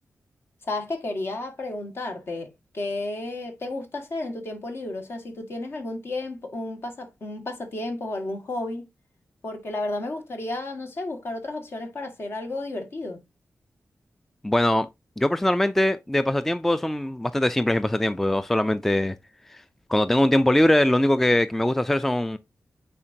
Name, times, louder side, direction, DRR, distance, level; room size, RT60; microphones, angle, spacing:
voice 1, 0.6-8.9 9.4-13.2, left 2 dB, 55° left, 1.8 m, -32 dB
voice 2, 14.4-14.9 15.2-19.2 19.5-19.6 19.9-22.4, left 1 dB, 5° left, 0.3 m, -22 dB
8.6 x 4.3 x 2.7 m
wide cardioid pair, 130°, 5 cm